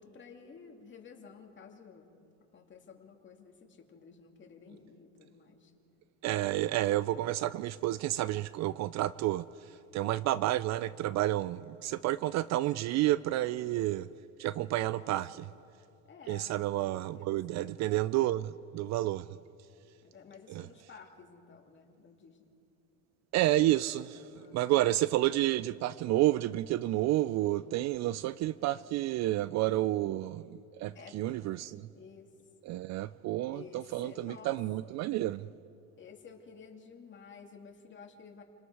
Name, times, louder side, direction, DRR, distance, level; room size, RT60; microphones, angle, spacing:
voice 1, 0.0-2.2 2.5-5.7 14.9-15.4 16.0-16.6 16.9-18.0 20.0-22.4 24.3-24.6 30.9-31.5 32.0-32.3 33.5-34.6 36.0-38.4, left 5 dB, 30° left, 2.5 m, -53 dB
voice 2, 6.2-9.5 9.9-14.1 14.4-15.5 16.3-19.3 20.5-20.7 23.3-31.9 32.6-35.5, right 15 dB, 50° right, 0.4 m, -30 dB
29.5 x 19.0 x 4.8 m
supercardioid pair, 110°, 36 cm